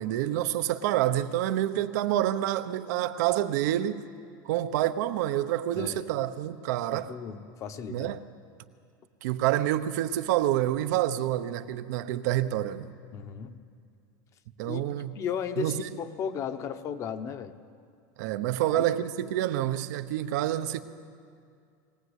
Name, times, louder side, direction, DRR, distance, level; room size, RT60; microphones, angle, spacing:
voice 1, 0.0-4.0 4.4-7.1 7.9-8.2 9.2-12.9 14.6-15.2 15.6-15.9 18.2-20.8, right 13 dB, 65° right, 1.0 m, -28 dB
voice 2, 6.9-8.1 13.1-13.6 14.6-17.5 18.7-18.8, left 7 dB, 30° left, 1.1 m, -35 dB
21.5 x 17.5 x 8.2 m
supercardioid pair, 155°, 10 cm